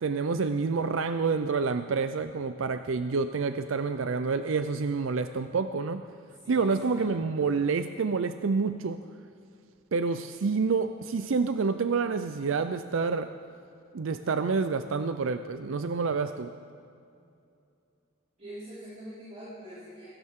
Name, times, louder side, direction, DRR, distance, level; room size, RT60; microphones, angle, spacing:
voice 1, 0.0-6.0 6.5-9.0 9.9-13.3 13.9-16.5, right 4 dB, 90° right, 10 dB, 0.5 m, -28 dB
voice 2, 6.4-7.4 18.4-20.1, right 1 dB, 35° right, -11 dB, 4.7 m, -45 dB
22.5 x 16.5 x 3.7 m, 2.5 s
head